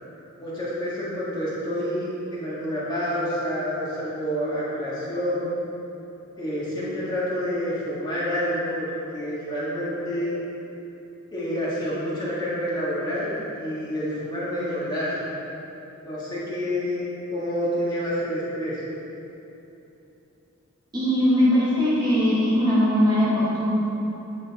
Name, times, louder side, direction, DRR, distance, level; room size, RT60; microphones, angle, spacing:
voice 1, 0.4-5.6 6.4-10.3 11.3-15.2 16.0-17.0 17.3-18.8, equal, 20° left, -9 dB, 1.7 m, -28 dB
voice 2, 20.9-23.7, equal, 20° right, -9 dB, 1.2 m, -20 dB
9.7 x 4.3 x 4.2 m, 3.0 s
head